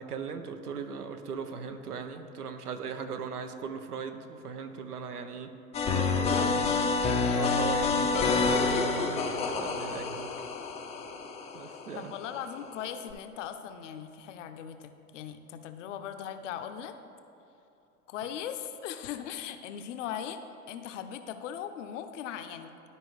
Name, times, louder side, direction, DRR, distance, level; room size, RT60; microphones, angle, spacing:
voice 1, 0.0-5.5 6.0-6.5 7.3-10.3 11.5-12.1, right 6 dB, 85° right, 8 dB, 0.8 m, -39 dB
sound 1, 5.7-12.3 13.1-13.2, left 4 dB, 15° left, 0.4 m, -28 dB
voice 2, 6.3-7.0 11.9-17.0 18.1-22.7, left 9 dB, 55° left, 8 dB, 0.7 m, -39 dB
12.0 x 4.7 x 3.1 m, 2.9 s
hypercardioid pair, 100°, 44 cm